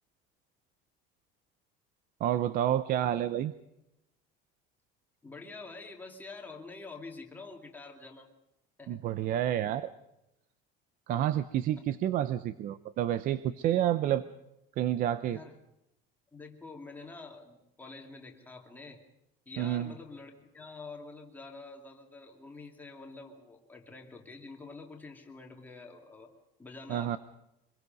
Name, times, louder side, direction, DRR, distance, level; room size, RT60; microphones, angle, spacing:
voice 1, 2.2-3.5 8.9-9.9 11.1-14.2 14.8-15.4 19.6-19.9 26.9-27.2, right 11 dB, 40° right, 13 dB, 0.7 m, -29 dB
voice 2, 5.2-8.3 8.8-9.0 15.3-15.6 16.3-19.0 19.5-26.3 26.6-27.2, left 3 dB, 10° left, 1 dB, 2.4 m, -47 dB
25.5 x 21.5 x 5.3 m, 0.89 s
cardioid pair, 170°, 21 cm